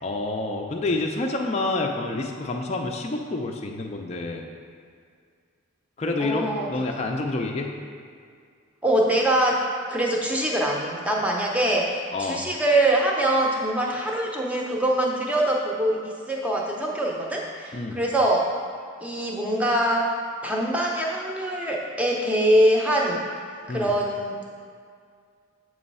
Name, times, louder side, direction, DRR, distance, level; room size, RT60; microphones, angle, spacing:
voice 1, 0.0-4.4 6.0-7.7 12.1-12.5 17.7-18.0 23.7-23.9, left 2 dB, 30° left, 1 dB, 0.4 m, -28 dB
voice 2, 6.2-6.7 8.8-18.5 19.0-20.1 20.4-23.2 23.7-24.5, right 1 dB, 5° right, -2 dB, 0.7 m, -23 dB
7.8 x 3.1 x 5.4 m, 2.2 s
head